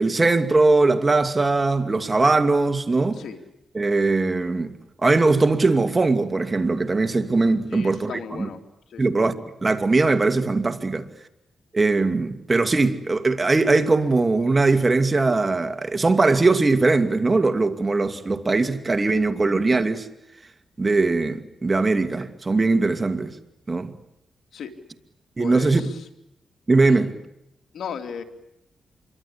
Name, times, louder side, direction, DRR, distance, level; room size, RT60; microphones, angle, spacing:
voice 1, 0.0-3.2 3.7-4.7 5.0-8.5 9.0-9.3 9.6-11.1 11.7-20.1 20.8-23.3 23.7-23.9 25.4-25.9 26.7-27.1, right 3 dB, 30° right, 2.4 m, -20 dB
voice 2, 7.7-8.6 8.9-9.0 24.5-24.7 25.4-25.9 26.9-27.1 27.7-28.2, left 7 dB, 75° left, 3.0 m, -35 dB
26.5 x 24.0 x 8.6 m
cardioid pair, 80°, 0 cm